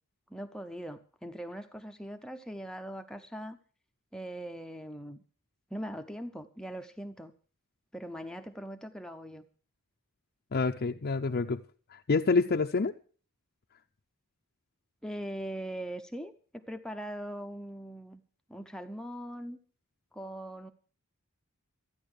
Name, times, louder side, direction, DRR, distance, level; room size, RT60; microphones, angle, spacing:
voice 1, 0.3-3.6 4.1-5.2 5.7-7.3 7.9-9.5 15.0-18.2 18.5-19.6 20.1-20.7, equal, 5° left, 6 dB, 0.6 m, -41 dB
voice 2, 10.5-11.6 11.9-12.9, left 4 dB, 45° left, 3 dB, 0.5 m, -27 dB
14.0 x 9.6 x 6.5 m, 0.41 s
head